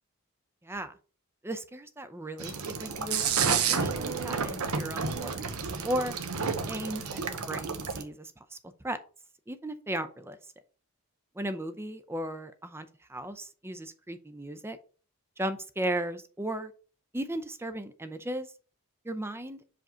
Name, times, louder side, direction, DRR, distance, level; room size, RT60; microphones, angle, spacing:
voice 1, 0.6-0.9 1.4-2.5 2.8-3.2 3.7-5.6 5.8-6.2 6.7-8.6 8.8-9.0 9.5-10.4 11.3-14.8 15.4-16.7 17.1-18.5 19.0-19.6, right 1 dB, 10° right, 11 dB, 0.5 m, -36 dB
sound 1, 2.4-8.0, right 6 dB, 75° right, 0.9 m, -30 dB
5.1 x 3.8 x 5.5 m, 0.38 s
head